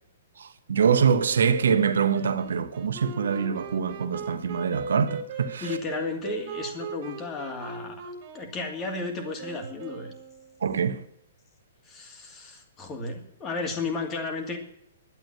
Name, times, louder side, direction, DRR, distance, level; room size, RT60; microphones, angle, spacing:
voice 1, 0.4-5.8 10.6-11.0, right 6 dB, 60° right, 1.2 m, -24 dB
Wind instrument woodwind instrument, 1.2-10.6, right 5 dB, 40° right, 2.6 m, -39 dB
voice 2, 5.6-8.0 8.3-10.1 11.9-14.6, left 3 dB, 20° left, 2.6 m, -33 dB
12.0 x 9.3 x 8.7 m
figure-of-eight pair, 115°, 0 cm